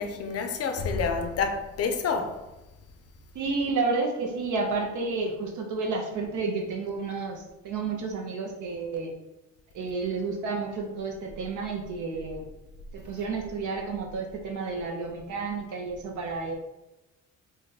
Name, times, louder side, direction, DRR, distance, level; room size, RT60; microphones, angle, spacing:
voice 1, 0.0-2.4, left 5 dB, 55° left, 0.4 m, -28 dB
voice 2, 3.3-9.1 9.7-12.4 12.9-16.6, right 4 dB, 75° right, 0.6 m, -31 dB
2.6 x 2.1 x 3.8 m
cardioid pair, 90°, 30 cm